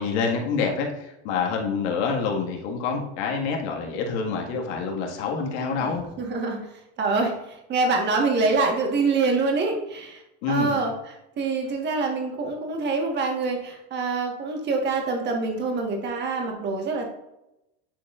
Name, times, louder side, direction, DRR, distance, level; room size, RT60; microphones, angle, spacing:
voice 1, 0.0-6.1 10.4-10.8, left 5 dB, 75° left, 1 dB, 1.8 m, -27 dB
voice 2, 5.8-6.6 7.0-17.0, right 3 dB, 30° right, 2 dB, 1.4 m, -25 dB
9.9 x 4.7 x 2.5 m, 0.89 s
supercardioid pair, 150°, 35 cm